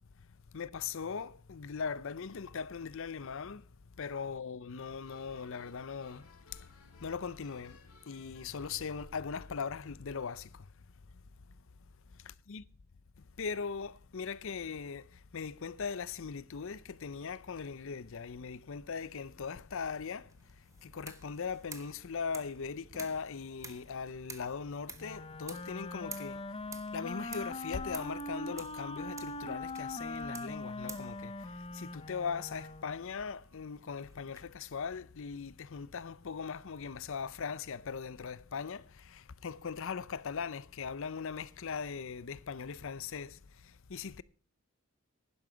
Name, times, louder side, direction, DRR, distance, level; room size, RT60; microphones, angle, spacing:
voice 1, 0.5-3.6 4.0-6.7 7.0-7.8 8.1-10.6 12.2-12.6 13.4-20.3 20.8-26.4 26.9-44.2, left 5 dB, 65° left, 0.6 m, -40 dB
sound 1, 5.0-9.3, left 3 dB, 85° left, 3.2 m, -61 dB
sound 2, 19.8-34.4, right 4 dB, 15° right, 1.1 m, -53 dB
Wind instrument woodwind instrument, 25.0-33.0, left 2 dB, 25° left, 0.7 m, -41 dB
11.0 x 11.0 x 5.0 m
head